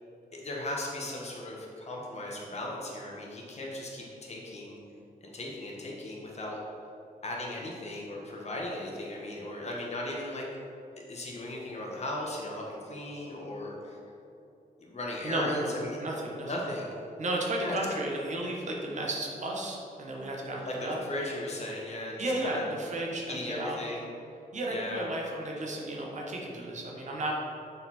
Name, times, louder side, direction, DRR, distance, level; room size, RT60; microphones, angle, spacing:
voice 1, 0.3-4.7 5.2-6.6 7.2-10.4 11.1-14.0 14.8-16.0 16.4-17.0 17.6-17.8 20.6-22.7 23.2-24.1 24.7-25.0, left 1 dB, 45° left, -2 dB, 1.2 m, -37 dB
voice 2, 15.2-15.7 16.0-16.5 17.2-21.0 22.2-23.8 24.5-27.3, right 1 dB, 50° right, -2 dB, 1.0 m, -33 dB
6.8 x 4.2 x 4.3 m, 2.8 s
wide cardioid pair, 130°, 16 cm